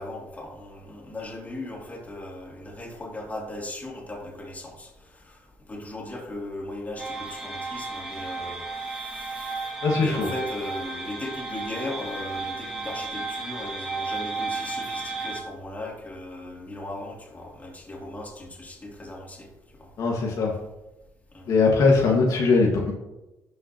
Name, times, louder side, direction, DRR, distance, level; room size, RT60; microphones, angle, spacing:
voice 1, 0.0-5.4 5.7-19.5 19.8-19.9 21.3-21.5, left 1 dB, 25° left, -2 dB, 2.7 m, -38 dB
sound 1, 7.0-15.4, right 3 dB, 10° right, 2.4 m, -33 dB
voice 2, 9.8-10.3 20.0-20.5 21.5-22.9, left 4 dB, 65° left, -2 dB, 1.5 m, -20 dB
11.5 x 5.8 x 2.9 m, 0.98 s
cardioid pair, 85°, 6 cm